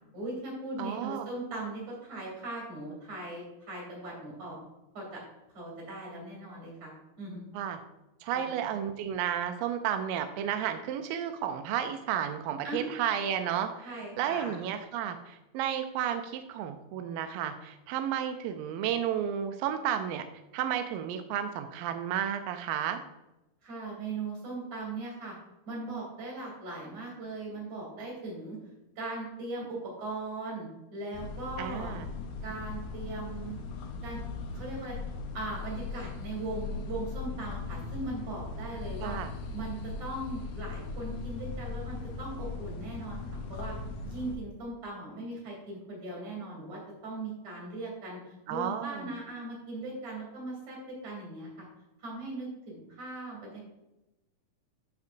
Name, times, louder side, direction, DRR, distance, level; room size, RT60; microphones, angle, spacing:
voice 1, 0.1-4.6 4.9-5.2 5.5-6.9 7.2-7.5 8.3-8.5 12.6-12.9 13.8-14.6 23.6-25.3 25.7-28.6 29.0-31.9 32.4-33.6 34.0-34.2 34.5-35.0 35.3-39.2 39.5-43.2 43.5-43.7 44.0-51.7 52.0-53.6, right 2 dB, 45° right, -2 dB, 4.0 m, -39 dB
voice 2, 0.8-1.2 7.5-7.8 8.2-13.9 14.2-20.2 20.5-23.0 31.6-32.1 39.0-39.3 48.5-49.1, right 9 dB, 85° right, 7 dB, 2.0 m, -32 dB
sound 1, 31.1-44.4, left 4 dB, 85° left, 1.6 m, -39 dB
12.0 x 5.6 x 2.6 m, 0.96 s
omnidirectional pair, 4.5 m